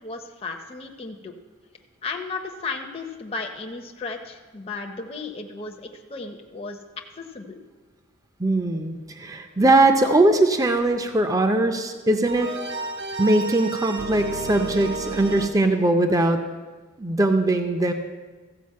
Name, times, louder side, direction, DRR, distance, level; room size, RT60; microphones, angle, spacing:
voice 1, 0.0-1.3 2.0-6.8 7.2-7.6, left 3 dB, 30° left, 2 dB, 0.6 m, -34 dB
voice 2, 8.4-12.5 13.2-16.4 17.0-17.9, right 2 dB, 15° right, 6 dB, 0.5 m, -20 dB
sound 1, 12.3-15.5, right 3 dB, 55° right, 0.8 m, -31 dB
14.5 x 5.0 x 7.4 m, 1.4 s
head